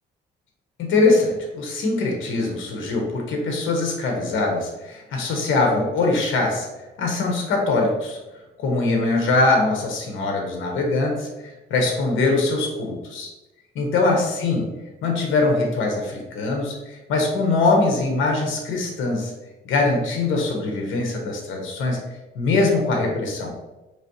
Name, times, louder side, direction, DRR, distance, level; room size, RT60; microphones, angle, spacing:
voice 1, 0.9-6.7 7.0-8.2 8.6-13.3 13.7-14.7 15.0-19.3 19.6-22.0 22.3-23.5, left 3 dB, 85° left, 1 dB, 1.0 m, -22 dB
4.9 x 3.1 x 3.0 m, 1.0 s
cardioid pair, 90°, 20 cm